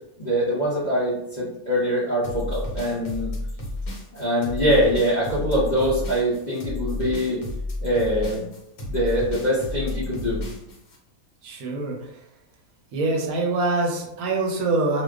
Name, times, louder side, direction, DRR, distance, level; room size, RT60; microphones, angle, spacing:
voice 1, 0.2-3.3 4.1-7.4 7.8-8.4 8.9-10.4, equal, 50° left, -9 dB, 0.5 m, -23 dB
sound 1, 2.2-11.0, left 1 dB, 75° left, 1.1 m, -32 dB
voice 2, 11.4-12.3 12.9-15.0, right 3 dB, 80° right, 0 dB, 1.0 m, -25 dB
2.4 x 2.2 x 2.3 m, 0.81 s
omnidirectional pair, 1.5 m